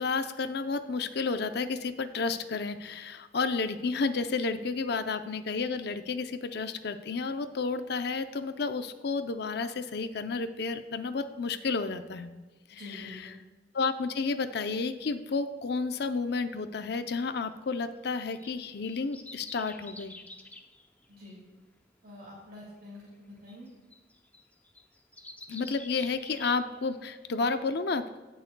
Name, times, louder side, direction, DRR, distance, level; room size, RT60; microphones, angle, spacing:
voice 1, 0.0-12.3 12.7-13.2 13.7-20.1 25.5-28.2, left 4 dB, 65° left, 10 dB, 0.6 m, -31 dB
voice 2, 12.8-13.4 21.1-21.4 22.0-23.7, left 1 dB, 55° right, -5 dB, 2.3 m, -47 dB
sound 1, 17.5-27.2 27.6-27.7, left 2 dB, 10° left, 0.6 m, -50 dB
17.0 x 6.5 x 2.2 m, 1.3 s
head